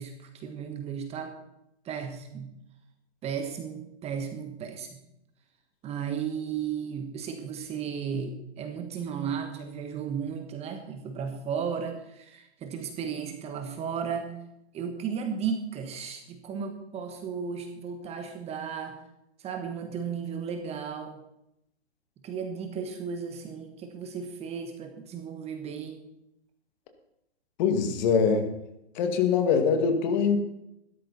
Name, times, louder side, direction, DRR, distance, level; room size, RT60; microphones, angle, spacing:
voice 1, 0.0-1.3 1.8-2.5 3.2-5.0 5.8-14.3 14.7-19.0 19.4-21.2 22.2-26.0, right 7 dB, 20° right, 6 dB, 1.3 m, -34 dB
voice 2, 27.6-28.5 28.9-30.5, left 6 dB, 40° left, 6 dB, 2.3 m, -23 dB
15.5 x 13.0 x 4.2 m, 0.83 s
hypercardioid pair, 140°, 34 cm